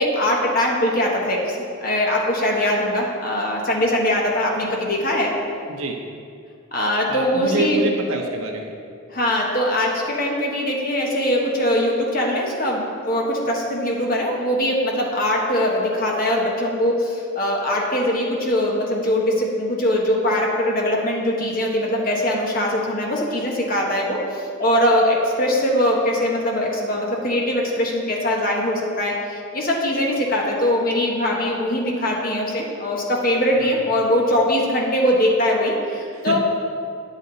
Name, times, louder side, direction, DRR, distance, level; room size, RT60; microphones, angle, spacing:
voice 1, 0.0-5.3 6.7-7.8 9.1-36.4, left 1 dB, 40° left, -2 dB, 1.4 m, -21 dB
voice 2, 5.7-6.0 7.1-8.8 33.6-33.8 36.1-36.4, right 2 dB, 85° right, 2 dB, 1.1 m, -26 dB
9.7 x 8.3 x 4.1 m, 2.4 s
head